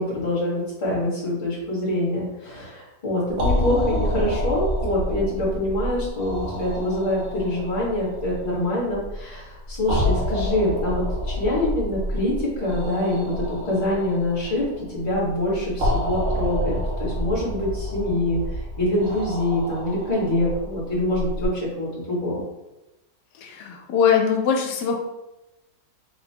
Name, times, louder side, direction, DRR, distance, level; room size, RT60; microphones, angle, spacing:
voice 1, 0.0-18.4 18.8-22.4, left 1 dB, 30° left, -7 dB, 1.3 m, -25 dB
sound 1, 3.3-21.5, left 1 dB, 60° right, 1.0 m, -29 dB
voice 2, 23.4-25.0, left 7 dB, 75° left, 2 dB, 1.2 m, -21 dB
3.2 x 3.0 x 2.7 m, 0.98 s
omnidirectional pair, 1.9 m